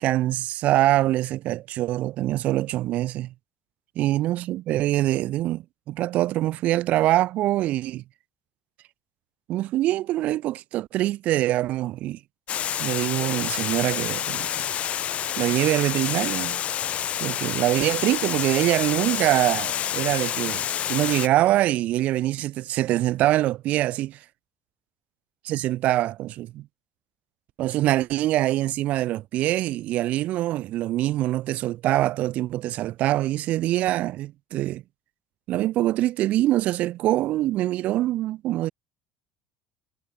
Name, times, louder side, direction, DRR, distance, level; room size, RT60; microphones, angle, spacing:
voice 1, 0.0-3.3 4.0-8.0 9.5-12.2 12.8-14.5 15.4-16.6 17.2-24.2 25.4-26.7 27.6-34.8 35.5-38.7, right 15 dB, 60° right, 1.1 m, -24 dB
Water, 12.5-21.3, left 10 dB, 50° left, 1.5 m, -28 dB
hypercardioid pair, 70°, 3 cm